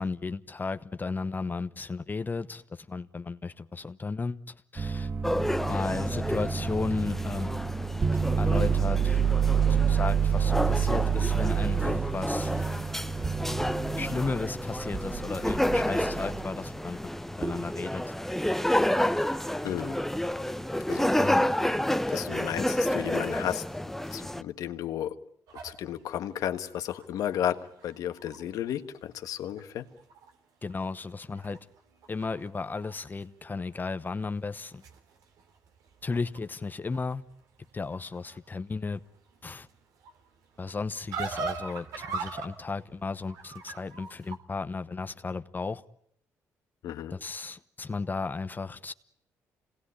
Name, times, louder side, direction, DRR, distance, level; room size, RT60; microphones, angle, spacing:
voice 1, 0.0-5.1 5.7-7.5 8.4-9.2 9.7-12.5 14.0-18.1 21.2-21.5 22.5-22.7 30.6-31.7 32.1-34.8 36.0-37.2 37.7-39.0 39.4-39.7 40.6-45.8 47.1-48.9, left 4 dB, 30° left, 1.0 m, -34 dB
sound 1, 4.8-16.5 17.4-17.8, right 7 dB, 35° right, 1.4 m, -28 dB
sound 2, 5.2-24.4, left 1 dB, 5° left, 1.0 m, -30 dB
voice 2, 19.6-20.0 20.9-21.1 22.1-23.6 24.1-25.2 25.6-29.9 46.8-47.1, left 11 dB, 75° left, 1.6 m, -33 dB
sound 3, 25.5-28.7 29.2-29.3 29.6-30.3 30.6-32.9 33.2-33.7 34.4-44.4, right 4 dB, 80° right, 3.2 m, -42 dB
26.5 x 19.5 x 10.0 m
supercardioid pair, 65°, 6 cm